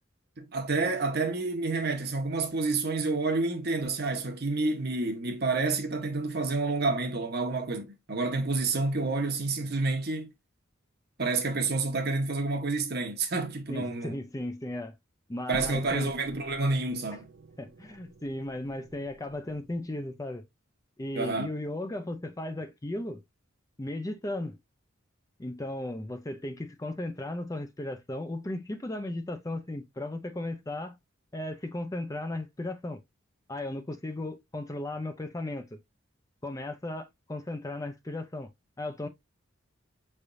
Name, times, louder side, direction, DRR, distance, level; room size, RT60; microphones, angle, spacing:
voice 1, 0.4-10.3 11.2-14.2 15.5-17.3 21.1-21.5, right 3 dB, 50° right, 1.0 m, -29 dB
voice 2, 13.7-15.0 15.3-16.1 17.6-20.4 21.0-23.2 23.8-24.6 25.4-31.0 31.3-33.0 33.5-35.8 36.4-38.5 38.8-39.1, left 1 dB, 15° left, 0.5 m, -36 dB
sound 1, 15.5-20.3, right 2 dB, 70° right, 0.7 m, -49 dB
5.8 x 3.4 x 2.5 m
head